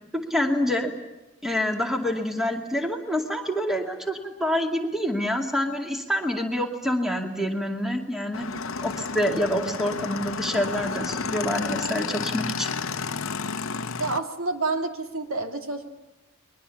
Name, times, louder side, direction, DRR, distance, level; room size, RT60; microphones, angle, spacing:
voice 1, 0.1-0.9 1.4-8.5 8.8-12.7, equal, ahead, 3 dB, 2.3 m, -27 dB
Motorcycle / Engine, 8.3-14.2, left 5 dB, 65° left, 0.8 m, -31 dB
voice 2, 14.0-15.9, right 3 dB, 70° right, 4 dB, 2.6 m, -28 dB
30.0 x 22.5 x 7.1 m, 1.0 s
head